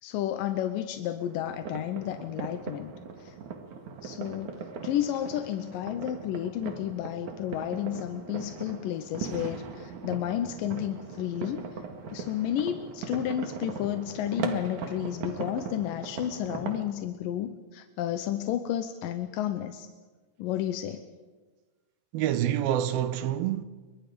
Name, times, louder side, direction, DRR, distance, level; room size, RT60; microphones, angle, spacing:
voice 1, 0.0-2.9 3.2-3.3 4.0-11.7 12.1-19.9 20.4-21.0, left 11 dB, 70° left, 2.2 m, -32 dB
sound 1, 1.2-16.9, right 5 dB, 55° right, 2.9 m, -39 dB
voice 2, 22.1-23.6, right 11 dB, 75° right, 2.6 m, -27 dB
29.0 x 24.0 x 5.2 m
omnidirectional pair, 4.6 m